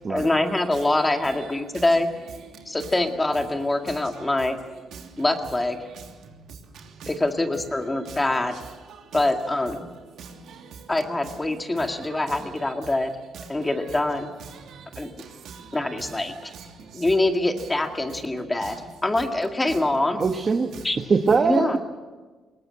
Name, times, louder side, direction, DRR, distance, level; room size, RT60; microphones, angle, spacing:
voice 1, 0.1-2.1 2.7-4.6 5.2-5.8 7.1-8.6 9.1-9.9 10.9-13.1 13.5-14.3 15.0-15.1 15.7-16.5 16.9-20.2 20.8-21.0 21.4-21.8, left 2 dB, 15° left, 2.0 m, -24 dB
voice 2, 4.9-5.2 5.9-6.0 6.7-7.1 8.1-8.2 8.9-9.1 10.2-10.9 11.8-12.4 14.5-16.1 16.4-17.0 18.6-18.7, right 6 dB, 75° right, 3.0 m, -43 dB
voice 3, 20.2-20.7 21.1-21.8, right 5 dB, 40° right, 1.3 m, -21 dB
21.0 x 19.0 x 7.6 m
cardioid pair, 90°, 0 cm